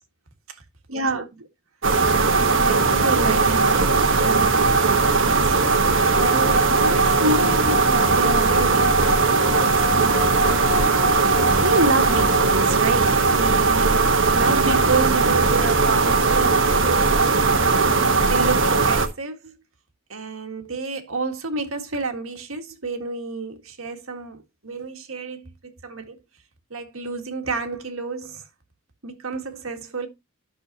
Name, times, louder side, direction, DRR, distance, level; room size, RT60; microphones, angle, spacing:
voice 1, 0.9-1.3 2.0-10.3 11.6-17.7 18.3-19.6 20.1-26.2 26.7-28.4 29.0-30.1, right 3 dB, 80° right, 1.8 m, -29 dB
sound 1, 1.8-19.1, right 4 dB, 60° right, 1.3 m, -19 dB
Singing / Glass, 6.1-12.7, left 14 dB, 50° left, 1.5 m, -33 dB
12.0 x 6.5 x 2.8 m
head